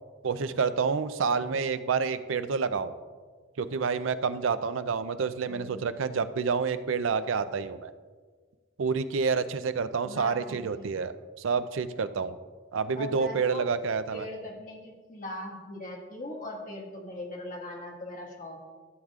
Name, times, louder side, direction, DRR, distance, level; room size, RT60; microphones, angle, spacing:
voice 1, 0.2-2.9 3.6-7.9 8.8-12.4 12.7-14.3, right 5 dB, 80° right, 12 dB, 0.5 m, -28 dB
voice 2, 5.5-5.9 10.0-10.8 13.0-13.7 14.1-18.7, left 1 dB, 40° left, -2 dB, 1.8 m, -40 dB
14.0 x 8.0 x 2.4 m, 1.5 s
head